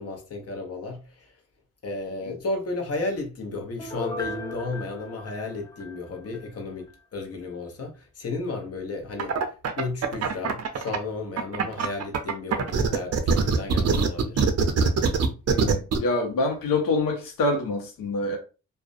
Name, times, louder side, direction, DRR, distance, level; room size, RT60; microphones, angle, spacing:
voice 1, 0.0-1.4 1.8-9.4 9.8-14.5, left 3 dB, 45° left, 0.8 m, -33 dB
Piano, 3.8-6.5 6.9-7.0, left 1 dB, 10° left, 0.3 m, -37 dB
sound 1, 9.2-11.0 11.4-16.0, right 6 dB, 50° right, 0.5 m, -23 dB
voice 2, 15.5-18.4, left 2 dB, 75° left, 0.7 m, -26 dB
2.4 x 2.1 x 2.5 m
cardioid pair, 70°, 33 cm